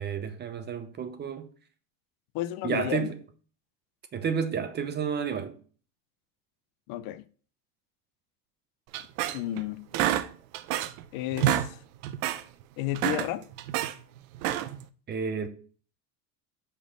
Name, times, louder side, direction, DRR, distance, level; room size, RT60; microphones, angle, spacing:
voice 1, 0.0-1.5 2.6-3.2 4.1-5.5 15.1-15.5, right 6 dB, 25° right, 0.7 m, -31 dB
voice 2, 2.3-3.1 6.9-7.2 9.3-9.9 11.1-11.8 12.8-13.4, left 14 dB, 55° left, 0.6 m, -32 dB
sound 1, 8.9-9.6 9.9-11.0 11.3-11.7 12.0-12.4 12.8-13.9 14.3-14.8, right 12 dB, 70° right, 0.7 m, -28 dB
5.6 x 4.2 x 6.2 m
supercardioid pair, 135°, 43 cm